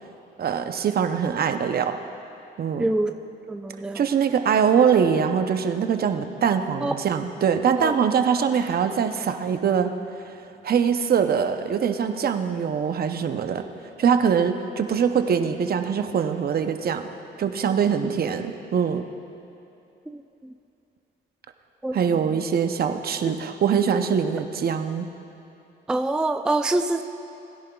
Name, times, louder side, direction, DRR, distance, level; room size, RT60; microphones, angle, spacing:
voice 1, 0.4-2.0 2.6-2.9 3.9-9.9 10.6-13.6 14.0-17.1 17.4-19.0 21.9-25.1, right 7 dB, 50° right, 7 dB, 0.7 m, -23 dB
voice 2, 2.8-3.1 3.5-4.0 6.8-6.9 7.8-7.9 20.1-20.2 21.8-22.0 25.9-27.0, right 2 dB, 5° right, 7 dB, 0.3 m, -24 dB
20.0 x 10.5 x 2.3 m, 2.8 s
cardioid pair, 90°, 20 cm